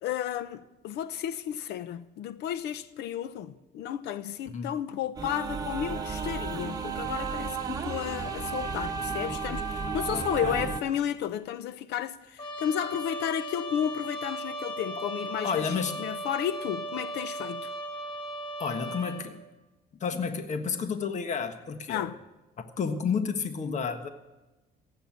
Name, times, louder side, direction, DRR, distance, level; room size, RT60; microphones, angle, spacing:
voice 1, 0.0-17.7 21.9-22.2, left 10 dB, 80° left, 0.9 m, -33 dB
sound 1, 5.2-10.8, right 5 dB, 20° right, 1.9 m, -33 dB
voice 2, 10.1-10.7 15.4-15.9 18.6-19.4 20.0-22.1 22.8-24.1, left 6 dB, 45° left, 1.4 m, -31 dB
Trumpet, 12.4-19.3, right 1 dB, 30° left, 2.3 m, -37 dB
16.0 x 8.1 x 9.4 m
cardioid pair, 110°, 17 cm